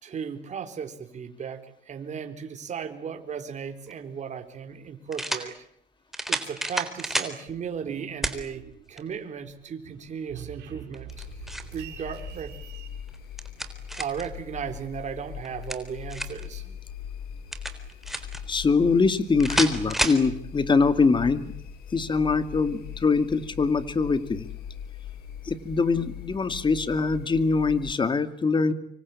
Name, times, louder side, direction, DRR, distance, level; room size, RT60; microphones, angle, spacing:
voice 1, 0.0-5.6 6.3-11.3 11.7-12.6 14.0-16.8, right 7 dB, 45° right, 6 dB, 4.0 m, -36 dB
sound 1, 3.9-4.0 5.1-5.5 6.1-7.3 8.2-8.4 9.0-9.1 10.9-11.7 13.1-14.3 15.4-16.5 17.5-18.4 19.4-20.2, right 1 dB, ahead, 3.8 m, -30 dB
sound 2, 7.5-9.2 9.5-12.9, right 11 dB, 85° right, 5.7 m, -44 dB
sound 3, 11.1-27.9, left 9 dB, 65° left, 3.4 m, -41 dB
voice 2, 18.5-21.5 21.9-24.5 25.4-28.7, left 4 dB, 30° left, 11 dB, 2.4 m, -23 dB
26.0 x 25.0 x 8.5 m, 0.68 s
cardioid pair, 110°, 17 cm